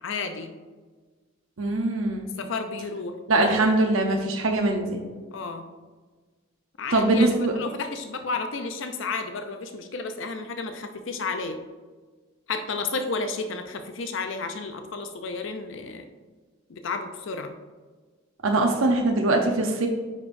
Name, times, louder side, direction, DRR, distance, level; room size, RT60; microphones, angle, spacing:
voice 1, 0.0-0.5 2.4-3.2 5.3-5.7 6.8-7.3 7.5-11.6 12.5-16.1 16.7-17.6, left 4 dB, 65° left, 7 dB, 0.5 m, -32 dB
voice 2, 1.6-2.3 3.3-5.0 6.9-7.6 18.4-19.9, right 2 dB, 85° right, 2 dB, 0.7 m, -22 dB
9.4 x 5.2 x 2.6 m, 1.4 s
head